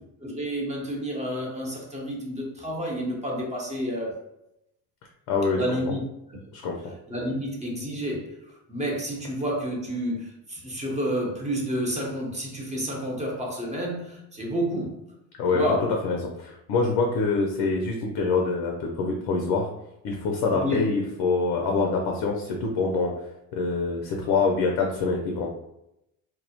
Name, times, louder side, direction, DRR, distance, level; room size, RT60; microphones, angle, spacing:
voice 1, 0.2-4.2 5.5-6.0 7.1-8.4 8.7-15.0 15.5-15.9 20.5-20.9, equal, 20° right, -1 dB, 0.8 m, -30 dB
voice 2, 5.3-5.8 6.5-6.8 15.4-15.6 16.0-19.7 20.0-23.1 23.5-25.5, left 4 dB, 70° left, 1 dB, 0.5 m, -25 dB
2.3 x 2.0 x 2.8 m, 0.85 s
supercardioid pair, 75°, 38 cm